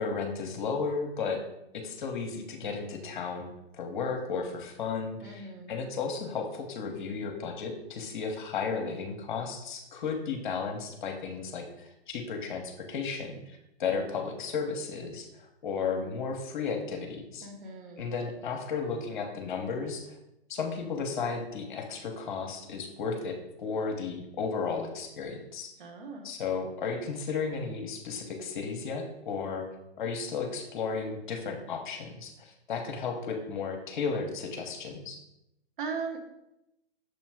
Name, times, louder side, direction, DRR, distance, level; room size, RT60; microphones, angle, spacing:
voice 1, 0.0-1.4 1.7-3.5 3.7-13.4 13.8-17.5 18.0-20.2 20.5-25.7 26.2-29.7 30.0-35.2, left 5 dB, 50° left, 4 dB, 1.0 m, -34 dB
voice 2, 5.2-5.7 17.4-18.0 25.8-26.3 35.8-36.2, right 5 dB, 50° right, 2 dB, 1.2 m, -38 dB
6.4 x 3.1 x 4.7 m, 0.87 s
figure-of-eight pair, 115°, 32 cm